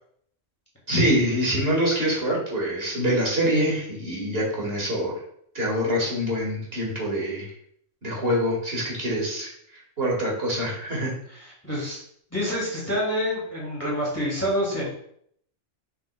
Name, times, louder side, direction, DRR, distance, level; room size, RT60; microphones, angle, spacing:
voice 1, 0.9-5.2 5.5-7.5 8.0-9.5 9.7-11.1, equal, 55° right, -3 dB, 2.1 m, -25 dB
voice 2, 11.3-12.0 12.3-14.9, equal, 10° left, -5 dB, 2.2 m, -27 dB
7.3 x 5.9 x 2.2 m, 0.67 s
omnidirectional pair, 1.2 m